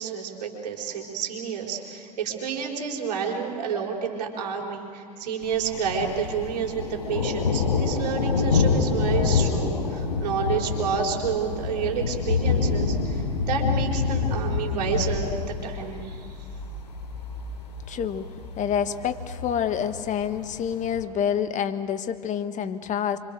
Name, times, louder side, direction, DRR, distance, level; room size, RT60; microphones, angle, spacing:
voice 1, 0.0-13.0 13.5-16.0, right 6 dB, 75° right, 1 dB, 4.4 m, -29 dB
Thunder, 5.4-21.0, left 5 dB, 85° left, 4.9 m, -27 dB
voice 2, 17.9-18.3 18.6-23.2, left 8 dB, 35° left, 10 dB, 1.5 m, -27 dB
26.5 x 25.5 x 6.7 m, 2.4 s
hypercardioid pair, 90°, 21 cm